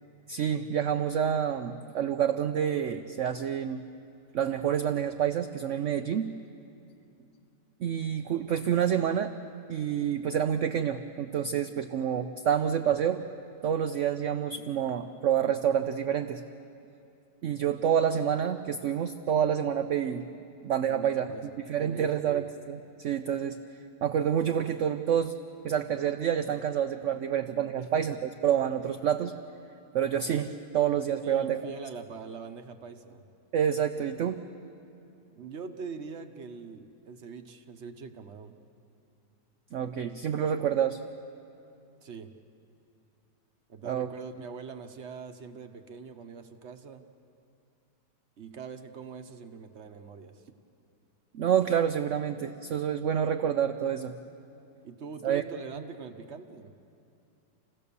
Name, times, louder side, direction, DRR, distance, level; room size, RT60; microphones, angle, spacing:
voice 1, 0.3-3.8 4.3-6.3 7.8-9.3 9.7-13.2 13.6-16.4 17.4-20.3 20.6-21.3 21.7-23.6 24.0-25.4 25.6-29.3 29.9-31.6 33.5-34.4 39.7-41.0 43.8-44.1 51.3-54.1 55.2-55.4, right 9 dB, 65° right, 8 dB, 0.7 m, -28 dB
voice 2, 20.9-22.4 27.8-28.2 31.2-33.2 35.4-38.6 42.0-42.3 43.7-47.0 48.4-50.5 54.8-56.7, right 5 dB, 45° right, 7 dB, 1.1 m, -43 dB
28.5 x 16.5 x 6.9 m, 2.7 s
omnidirectional pair, 1.9 m